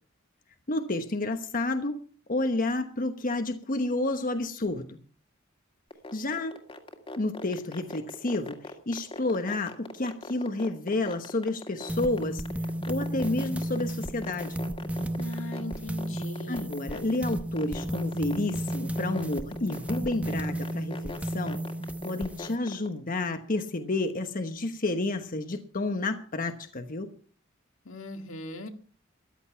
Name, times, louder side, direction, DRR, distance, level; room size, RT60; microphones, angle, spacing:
voice 1, 0.7-2.0 2.3-5.0 6.1-6.6 7.2-8.6 8.9-12.4 12.9-14.6 16.5-21.6 22.0-27.1, left 2 dB, 45° left, 7 dB, 1.1 m, -30 dB
sound 1, 5.9-22.9, left 2 dB, 30° left, 2.1 m, -39 dB
sound 2, 11.9-22.6, right 1 dB, 5° right, 0.8 m, -33 dB
voice 2, 15.2-16.7 27.9-28.7, left 1 dB, 80° left, 5 dB, 1.9 m, -40 dB
14.5 x 10.5 x 5.7 m, 0.43 s
head